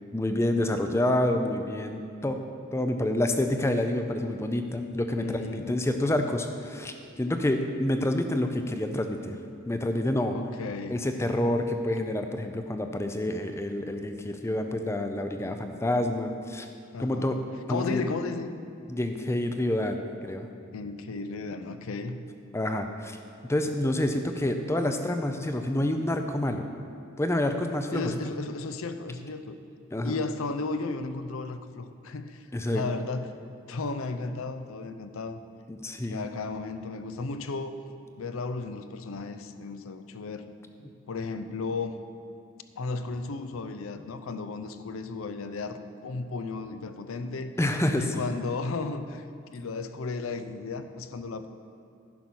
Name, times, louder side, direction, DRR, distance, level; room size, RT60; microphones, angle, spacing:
voice 1, 0.1-2.4 2.7-9.4 9.7-10.4 10.9-16.7 17.0-17.4 17.7-18.0 18.9-20.5 22.5-23.2 23.5-26.6 27.2-28.1 29.9-30.2 32.5-32.8 35.7-36.2 47.6-48.2, left 1 dB, 10° left, 6 dB, 0.4 m, -28 dB
voice 2, 5.2-5.7 10.3-11.0 16.9-17.3 17.7-18.5 20.7-22.2 27.9-29.6 30.0-33.3 33.7-35.4 36.1-37.7 38.2-40.5 41.1-42.0 42.8-47.5 48.0-49.3 49.5-51.5, left 3 dB, 70° left, 10 dB, 0.5 m, -34 dB
10.5 x 5.5 x 6.1 m, 2.5 s
head